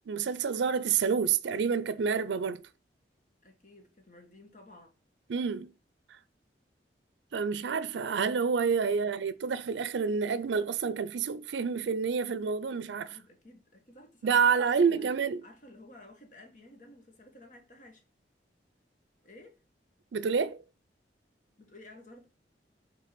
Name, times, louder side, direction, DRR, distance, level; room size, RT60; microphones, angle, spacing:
voice 1, 0.1-2.6 5.3-5.7 7.3-13.2 14.2-15.4 20.1-20.6, right 6 dB, 85° right, 0.4 m, -28 dB
voice 2, 3.4-4.9 8.9-9.1 13.1-15.1 15.4-18.0 19.2-19.6 21.6-22.3, left 1 dB, 45° left, 1.4 m, -53 dB
5.8 x 3.7 x 5.9 m
head